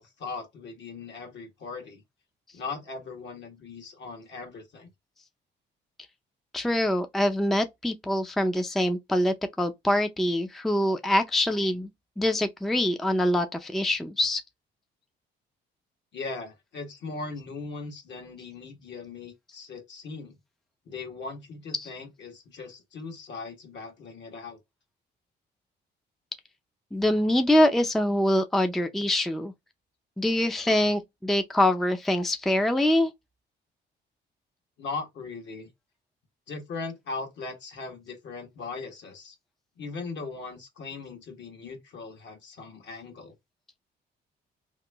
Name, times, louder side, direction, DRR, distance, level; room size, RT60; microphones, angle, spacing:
voice 1, 0.0-2.0 2.5-4.9 16.1-20.4 20.9-24.6 34.8-35.7 36.5-39.4 39.8-43.3, left 4 dB, 65° left, 1.3 m, -39 dB
voice 2, 6.5-11.9 12.2-14.4 21.7-21.9 26.9-29.5 30.2-33.1, left 1 dB, ahead, 0.4 m, -24 dB
3.0 x 2.5 x 3.3 m
cardioid pair, 90°, 20 cm